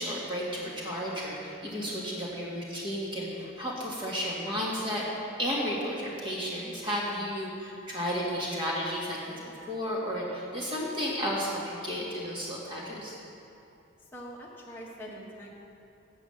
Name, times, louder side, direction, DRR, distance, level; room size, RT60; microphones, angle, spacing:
voice 1, 0.0-5.0 5.4-9.4 9.7-13.2, equal, 25° right, -5 dB, 1.9 m, -33 dB
voice 2, 7.0-7.6 14.1-15.5, equal, 10° left, -4 dB, 1.3 m, -44 dB
8.3 x 7.2 x 7.1 m, 2.7 s
head